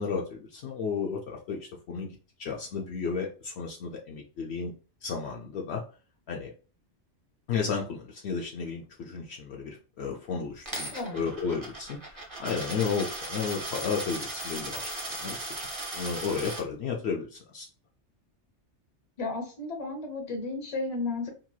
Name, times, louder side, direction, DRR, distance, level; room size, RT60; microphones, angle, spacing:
voice 1, 0.0-4.7 5.0-5.8 6.3-6.5 7.5-15.7 15.9-17.7, left 5 dB, 70° left, 0 dB, 0.8 m, -33 dB
Coin (dropping), 10.7-16.6, right 2 dB, 25° right, 0.9 m, -37 dB
voice 2, 10.9-11.3 19.2-21.3, left 3 dB, 35° left, 2 dB, 0.8 m, -33 dB
2.9 x 2.7 x 2.2 m, 0.36 s
omnidirectional pair, 1.2 m